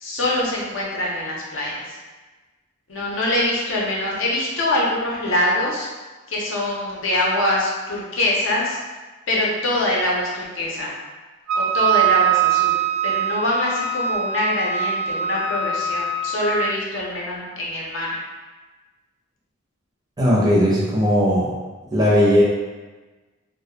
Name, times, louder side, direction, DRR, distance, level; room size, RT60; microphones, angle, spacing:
voice 1, 0.0-2.0 2.9-5.9 6.3-8.8 9.3-10.9 11.5-18.2, left 1 dB, 60° left, -4 dB, 0.6 m, -24 dB
Wind instrument woodwind instrument, 11.5-16.7, right 7 dB, 85° right, 0.3 m, -22 dB
voice 2, 20.2-21.5 21.9-22.4, equal, 20° right, -5 dB, 0.5 m, -17 dB
2.2 x 2.1 x 2.8 m, 1.2 s
head